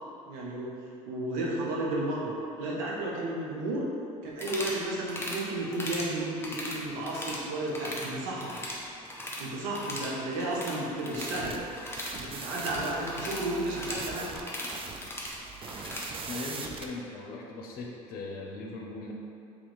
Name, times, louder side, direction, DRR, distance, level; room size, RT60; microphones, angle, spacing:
voice 1, 0.3-0.8 1.1-3.9 4.2-8.5 9.4-11.6 12.1-14.3, right 1 dB, 80° right, -4 dB, 0.8 m, -33 dB
sound 1, 4.3-4.8 5.1-5.4 5.7-6.1 6.4-7.4 7.7-8.1 8.4-9.5 9.7-16.1, left 1 dB, 15° left, 0.8 m, -38 dB
sound 2, 11.1-16.9, right 4 dB, 30° right, 0.4 m, -42 dB
voice 2, 16.3-19.1, left 3 dB, 60° left, -1 dB, 0.7 m, -39 dB
3.0 x 2.9 x 4.1 m, 2.7 s
hypercardioid pair, 70°, 17 cm